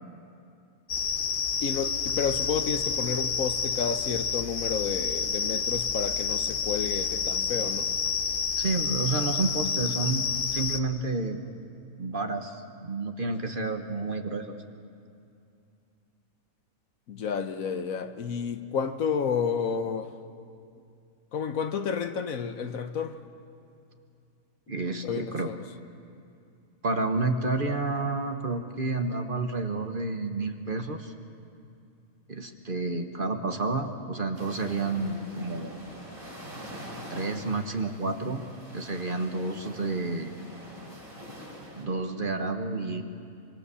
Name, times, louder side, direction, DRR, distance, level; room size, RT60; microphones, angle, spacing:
sound 1, 0.9-10.8, left 6 dB, 45° left, 0.9 m, -29 dB
voice 1, 1.6-7.8 17.1-20.1 21.3-23.1 25.0-25.6, left 6 dB, 70° left, 9 dB, 1.4 m, -31 dB
voice 2, 8.6-10.3 10.5-11.4 12.0-14.5 24.7-25.5 26.8-31.1 32.3-35.8 37.1-38.4 38.7-40.3 41.7-43.0, right 3 dB, 40° right, 5 dB, 1.4 m, -30 dB
sound 2, 34.3-41.8, equal, 70° right, 5.4 m, -44 dB
26.0 x 24.5 x 7.0 m, 2.5 s
omnidirectional pair, 1.5 m